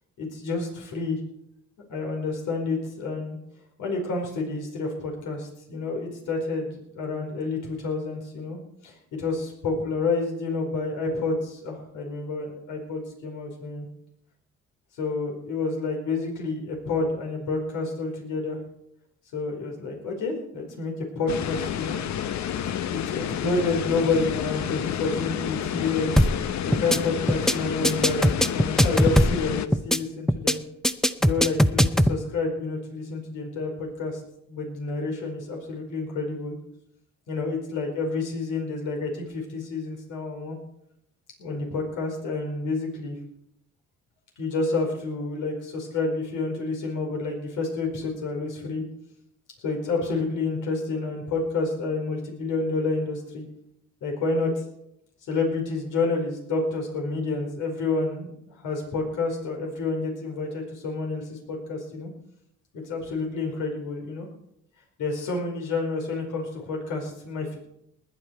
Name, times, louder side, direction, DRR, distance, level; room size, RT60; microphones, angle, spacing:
voice 1, 0.2-1.2 1.9-3.4 3.8-13.8 15.0-18.6 19.3-22.0 22.9-26.1 26.6-30.6 31.2-34.2 34.5-36.5 37.3-40.6 41.4-43.2 44.4-48.8 49.6-53.4 54.0-54.6 55.3-58.3 58.6-62.1 62.7-64.3 65.0-67.6, left 3 dB, 85° left, 0 dB, 4.8 m, -29 dB
sound 1, 21.3-29.7, left 9 dB, 65° left, 0.9 m, -30 dB
sound 2, 26.2-26.4 26.7-27.0 27.3-27.5 27.8-29.4 29.7-30.0 30.3-30.5 30.8-32.1, equal, ahead, 0.6 m, -19 dB
20.0 x 10.0 x 4.6 m, 0.77 s
cardioid pair, 90°, 30 cm